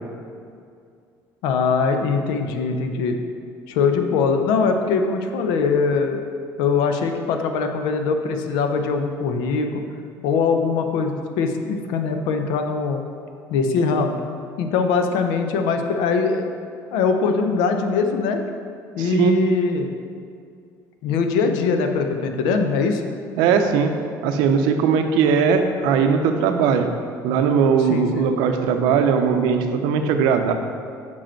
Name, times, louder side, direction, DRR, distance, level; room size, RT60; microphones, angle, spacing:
voice 1, 1.4-3.1 3.7-6.2 6.6-9.8 10.2-13.0 13.5-14.2 14.6-16.5 16.9-18.4 19.0-19.9 21.0-23.1 27.9-28.2, left 5 dB, 90° left, 6 dB, 0.6 m, -22 dB
voice 2, 19.0-19.3 23.4-23.9 24.2-26.9 27.2-30.5, right 6 dB, 85° right, 6 dB, 0.5 m, -19 dB
5.5 x 5.1 x 4.4 m, 2.3 s
cardioid pair, 125°, 7 cm